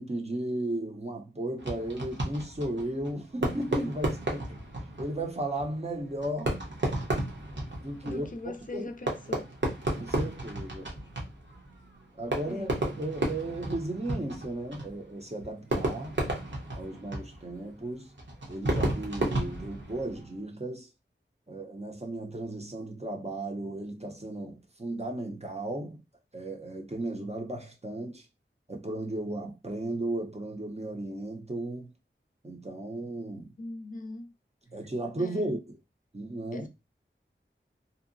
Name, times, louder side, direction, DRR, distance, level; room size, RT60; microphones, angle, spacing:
voice 1, 0.0-4.6 5.0-6.6 7.8-8.9 10.0-10.9 12.2-16.2 16.7-18.1 18.5-20.9 21.5-26.0 26.3-28.3 28.7-31.9 32.4-33.5 34.7-35.8 36.1-36.7, right 1 dB, 30° right, 0.6 m, -35 dB
Fireworks, 1.6-20.4, right 1 dB, 60° right, 0.8 m, -34 dB
voice 2, 8.0-9.5 12.4-12.7 33.6-34.3 35.2-35.5 36.5-36.7, left 2 dB, 40° left, 0.5 m, -40 dB
2.7 x 2.0 x 2.5 m
wide cardioid pair, 40°, 21 cm